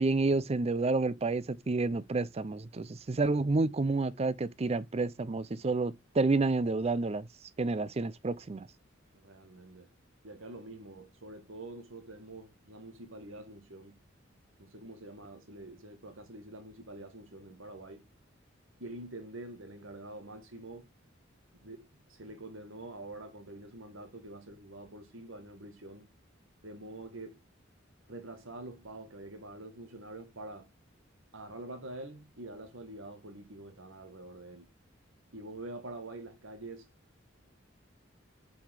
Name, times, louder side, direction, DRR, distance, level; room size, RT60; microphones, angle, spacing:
voice 1, 0.0-7.3 7.6-8.7, right 3 dB, 30° right, 0.5 m, -29 dB
voice 2, 9.1-9.9 10.2-14.0 14.6-18.1 18.8-20.9 21.5-26.1 26.6-27.4 28.1-30.7 31.3-34.7 35.3-36.9, right 2 dB, 85° right, 2.0 m, -46 dB
7.0 x 4.9 x 6.5 m
head